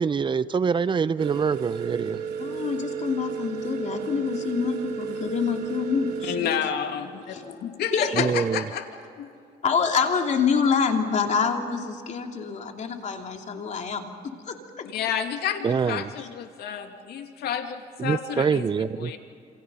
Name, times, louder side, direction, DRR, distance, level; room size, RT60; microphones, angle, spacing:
voice 1, 0.0-2.2 8.1-8.6 15.6-16.1 18.0-19.1, right 6 dB, 30° right, 15 dB, 0.7 m, -25 dB
sound 1, 1.2-6.4, right 7 dB, 75° right, 3.8 m, -33 dB
voice 2, 2.4-6.5 7.3-7.4 7.9-8.3 9.6-14.9 16.2-16.3, left 6 dB, 45° left, 3 dB, 2.8 m, -26 dB
voice 3, 6.2-8.9 9.2-9.3 14.8-19.2, left 8 dB, 70° left, 5 dB, 2.5 m, -30 dB
28.0 x 28.0 x 5.6 m, 2.5 s
cardioid pair, 110°, 17 cm